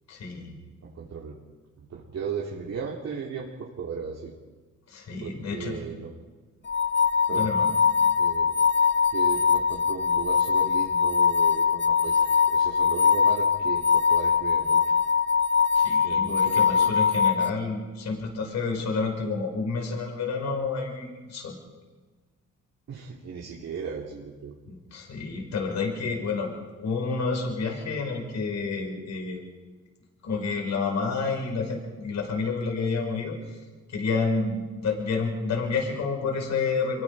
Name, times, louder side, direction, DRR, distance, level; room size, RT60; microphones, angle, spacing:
voice 1, 0.1-0.5 4.9-5.8 7.3-7.7 15.7-21.5 24.7-26.5 26.8-29.4 30.2-33.4 33.9-37.0, left 4 dB, 65° left, 2 dB, 5.4 m, -29 dB
voice 2, 0.8-1.4 1.8-4.3 5.2-6.1 7.3-7.5 8.2-8.5 9.1-14.9 16.0-16.9 22.9-24.5, right 6 dB, 55° right, -2 dB, 3.1 m, -36 dB
sound 1, 6.7-17.5, left 6 dB, 40° left, 0.9 m, -22 dB
26.0 x 22.5 x 4.9 m, 1.3 s
cardioid pair, 90°, 30 cm